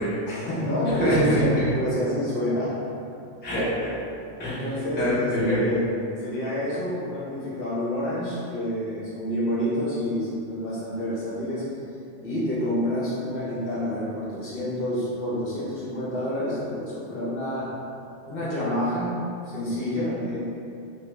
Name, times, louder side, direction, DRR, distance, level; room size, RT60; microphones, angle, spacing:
voice 1, 0.3-2.7 4.4-5.8 6.2-11.6 12.2-17.7 18.3-19.1 19.5-20.4, left 1 dB, 55° left, -9 dB, 0.8 m, -28 dB
voice 2, 1.0-1.7 3.4-3.9 4.4-4.6 5.0-5.7, equal, 15° left, -10 dB, 0.4 m, -24 dB
2.3 x 2.3 x 3.0 m, 2.6 s
omnidirectional pair, 1.3 m